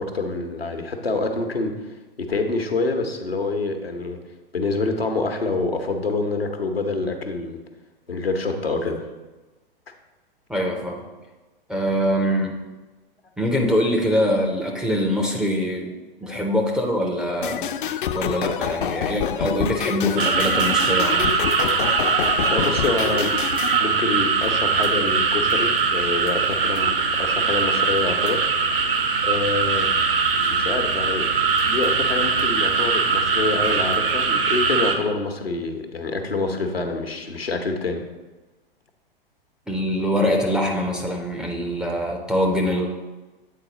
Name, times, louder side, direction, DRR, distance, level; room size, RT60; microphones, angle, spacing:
voice 1, 0.0-1.7 2.2-4.2 4.5-7.6 8.1-9.0 16.2-16.4 22.5-23.3 23.8-26.9 27.2-28.4 29.2-29.9 30.5-31.3 31.6-38.0, left 3 dB, 90° left, 5 dB, 0.9 m, -26 dB
voice 2, 10.5-11.0 11.7-12.6 13.4-15.9 16.2-17.7 18.1-21.3 39.7-42.9, equal, 5° right, 0 dB, 0.4 m, -23 dB
sound 1, 17.4-23.8, left 9 dB, 60° left, 0.5 m, -27 dB
sound 2, 20.2-35.0, right 5 dB, 70° right, 0.8 m, -21 dB
8.2 x 4.1 x 3.8 m, 1.2 s
figure-of-eight pair, 105°, 29 cm